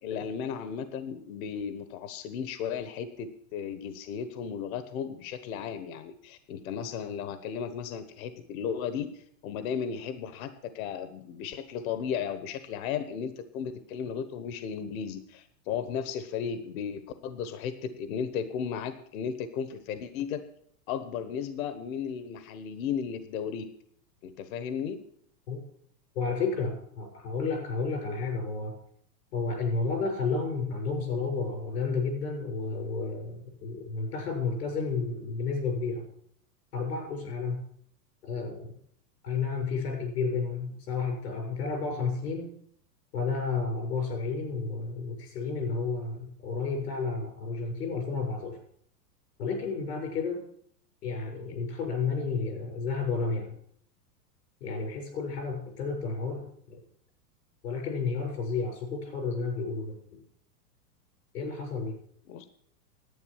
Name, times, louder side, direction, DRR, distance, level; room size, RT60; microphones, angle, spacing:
voice 1, 0.0-20.4 20.9-23.7 24.2-25.0 62.3-62.5, left 7 dB, 60° left, 11 dB, 1.3 m, -35 dB
voice 2, 26.2-28.7 29.3-36.0 36.7-37.6 38.2-38.7 39.2-42.5 43.1-48.6 49.4-50.4 51.0-53.5 54.6-56.8 57.6-60.2 61.3-62.0, left 4 dB, 85° left, 2 dB, 6.9 m, -31 dB
11.0 x 9.2 x 7.3 m, 0.64 s
supercardioid pair, 140°, 47 cm